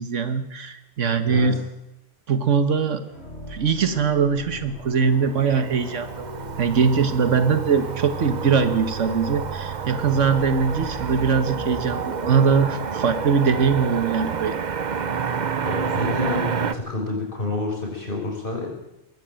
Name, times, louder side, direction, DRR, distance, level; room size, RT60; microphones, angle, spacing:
voice 1, 0.0-1.6 2.3-3.0 3.5-6.3 6.6-14.6, right 6 dB, 85° right, 10 dB, 1.6 m, -21 dB
voice 2, 1.2-1.6 15.6-18.7, left 2 dB, 45° left, 0 dB, 6.2 m, -29 dB
sound 1, 3.0-12.8, left 1 dB, 85° left, 7.4 m, -39 dB
Motor vehicle (road), 4.8-16.7, right 6 dB, 40° right, 0.9 m, -29 dB
20.5 x 14.5 x 8.9 m, 0.93 s
omnidirectional pair, 1.2 m